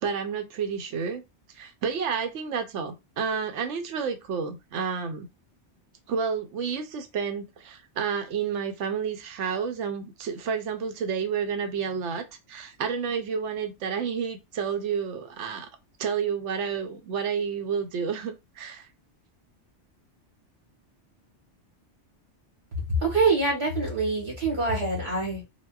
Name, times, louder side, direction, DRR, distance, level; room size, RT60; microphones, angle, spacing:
voice 1, 0.0-1.2 1.5-5.3 6.1-15.7 16.0-18.9, right 6 dB, 85° right, 0.9 m, -30 dB
voice 2, 23.0-25.4, right 3 dB, 65° right, 1.8 m, -25 dB
3.9 x 2.1 x 2.3 m
omnidirectional pair, 1.2 m